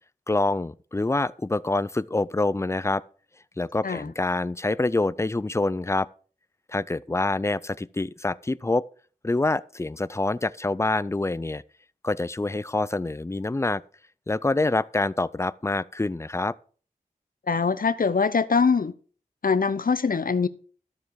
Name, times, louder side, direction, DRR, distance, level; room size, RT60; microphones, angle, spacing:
voice 1, 0.3-3.0 3.6-6.1 6.7-8.8 9.2-11.6 12.0-13.8 14.3-16.5, left 2 dB, 20° left, 0.4 m, -26 dB
voice 2, 17.5-18.9 19.4-20.5, left 5 dB, 70° left, 0.7 m, -23 dB
12.5 x 7.2 x 4.7 m
wide cardioid pair, 70°, 15 cm